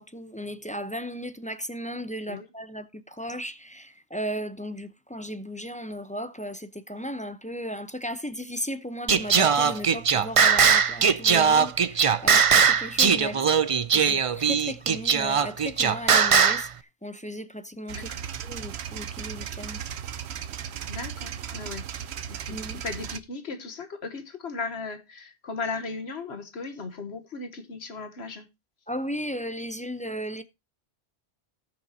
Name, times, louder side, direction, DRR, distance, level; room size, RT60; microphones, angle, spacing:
voice 1, 0.0-13.5 13.8-18.1 18.4-19.8 22.5-22.8 28.9-30.4, equal, 10° left, 0.6 m, -36 dB
Singing, 9.1-16.7, right 6 dB, 40° right, 0.5 m, -20 dB
sound 1, 17.9-23.2, right 8 dB, 80° right, 1.0 m, -36 dB
voice 2, 20.9-21.8 22.3-28.5, left 4 dB, 75° left, 1.4 m, -36 dB
18.0 x 6.0 x 2.8 m
omnidirectional pair, 1.1 m